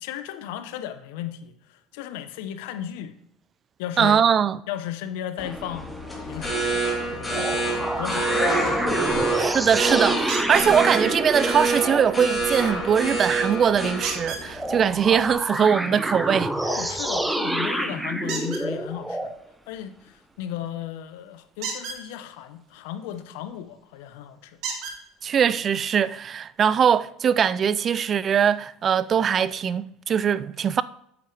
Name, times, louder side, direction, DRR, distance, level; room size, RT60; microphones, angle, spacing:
voice 1, 0.0-3.1 3.8-4.2 4.7-6.0 6.3-6.7 7.1-8.8 16.7-19.3 19.7-24.6, left 11 dB, 75° left, 0.8 m, -35 dB
voice 2, 4.0-4.6 9.3-16.6 25.2-30.8, right 8 dB, 40° right, 0.4 m, -21 dB
sound 1, 5.4-7.0 7.3-12.1 14.5-19.4, right 1 dB, 5° right, 0.8 m, -29 dB
sound 2, 5.7-15.3, right 2 dB, 10° left, 3.4 m, -27 dB
sound 3, 10.3-10.7 14.0-14.4 18.3-18.6 21.5-22.0 23.7-23.8 24.6-25.0 26.0-26.1 26.5-26.6, right 4 dB, 60° right, 2.2 m, -32 dB
9.0 x 8.4 x 3.3 m
supercardioid pair, 90°, 0 cm